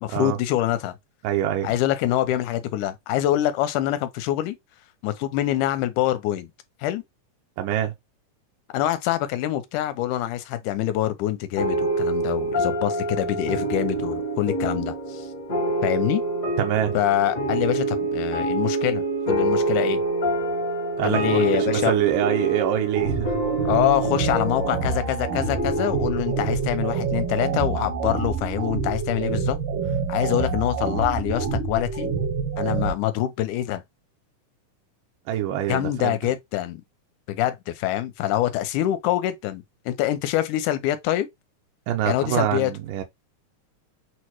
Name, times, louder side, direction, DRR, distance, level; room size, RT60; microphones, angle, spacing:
voice 1, 0.0-1.0 1.6-4.6 5.0-6.5 6.8-7.0 8.7-15.3 15.8-16.2 16.9-20.0 21.0-21.9 23.7-29.6 30.1-32.1 32.6-33.8 35.7-36.8 37.3-41.3 42.1-42.7, left 13 dB, 80° left, 2.1 m, -25 dB
voice 2, 1.2-1.7 7.6-7.9 16.6-17.0 21.0-23.3 35.3-36.2 41.9-43.0, right 11 dB, 90° right, 2.3 m, -25 dB
sound 1, 11.6-28.4, right 2 dB, 55° left, 0.9 m, -27 dB
sound 2, 23.0-32.9, right 5 dB, 70° right, 1.3 m, -27 dB
6.3 x 2.1 x 3.0 m
omnidirectional pair, 3.6 m